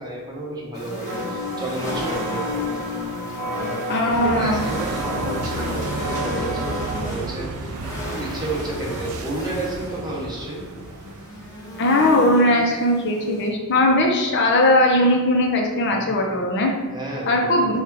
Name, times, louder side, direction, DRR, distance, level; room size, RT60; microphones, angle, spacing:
voice 1, 0.0-2.8 3.4-7.8 8.1-10.7 15.9-16.3 16.9-17.6, right 2 dB, 20° right, -4 dB, 0.9 m, -31 dB
sound 1, 0.7-13.5, equal, 15° left, 1.1 m, -35 dB
sound 2, 1.1-7.1, left 1 dB, 50° right, 0.8 m, -30 dB
voice 2, 3.9-4.6 11.8-16.7 17.3-17.8, left 1 dB, 55° left, 1 dB, 0.6 m, -19 dB
sound 3, 4.1-12.1, right 3 dB, 90° right, 0.4 m, -33 dB
4.8 x 2.4 x 4.5 m, 1.3 s
head